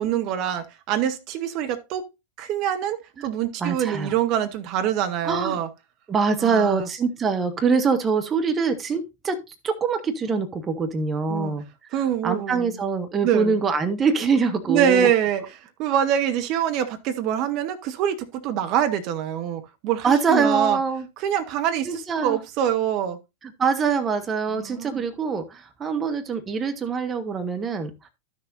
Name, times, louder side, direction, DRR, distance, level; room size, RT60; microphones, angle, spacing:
voice 1, 0.0-2.1 2.4-5.7 6.4-6.9 11.3-11.5 11.9-12.8 13.2-13.6 14.7-15.4 15.8-20.8 21.2-23.2 24.5-25.0, right 9 dB, 40° right, 1.1 m, -25 dB
voice 2, 3.6-4.1 5.2-5.6 6.1-11.6 12.2-15.1 20.0-21.1 21.8-22.4 23.4-27.9, right 5 dB, 20° right, 1.2 m, -24 dB
13.0 x 6.5 x 2.6 m
figure-of-eight pair, 90°, 0 cm